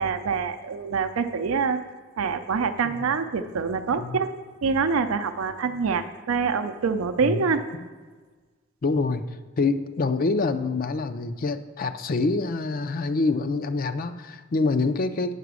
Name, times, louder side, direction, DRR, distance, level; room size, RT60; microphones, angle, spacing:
voice 1, 0.0-1.8 2.2-4.3 4.6-7.6, right 5 dB, 90° right, 8 dB, 0.5 m, -25 dB
voice 2, 8.8-9.2 9.6-15.3, left 3 dB, 45° left, 11 dB, 0.4 m, -26 dB
8.2 x 5.8 x 6.2 m, 1.4 s
head